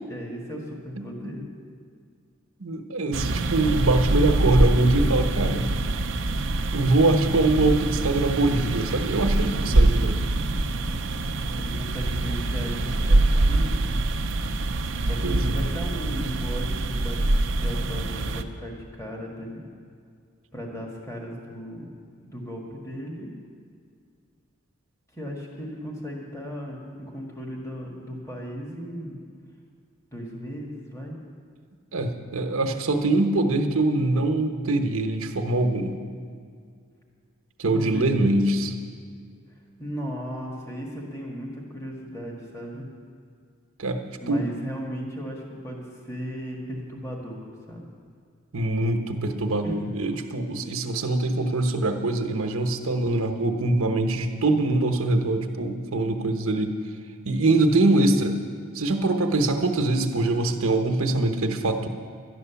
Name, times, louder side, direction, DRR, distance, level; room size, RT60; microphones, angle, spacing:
voice 1, 0.1-1.5 11.6-14.0 15.0-19.7 20.5-21.9 22.2-23.3 25.1-29.2 30.1-31.1 37.7-38.3 39.8-42.9 44.2-47.9 49.6-49.8, equal, 15° left, -1 dB, 1.6 m, -36 dB
voice 2, 1.0-1.3 2.6-5.7 6.7-10.2 15.2-15.6 31.9-36.0 37.6-38.7 43.8-44.0 44.3-44.5 48.5-56.8 57.3-58.4 58.7-61.9, right 2 dB, 75° right, 5 dB, 1.0 m, -23 dB
sound 1, 3.1-18.4, right 2 dB, 60° right, 0.6 m, -24 dB
12.0 x 11.0 x 7.0 m, 2.2 s
head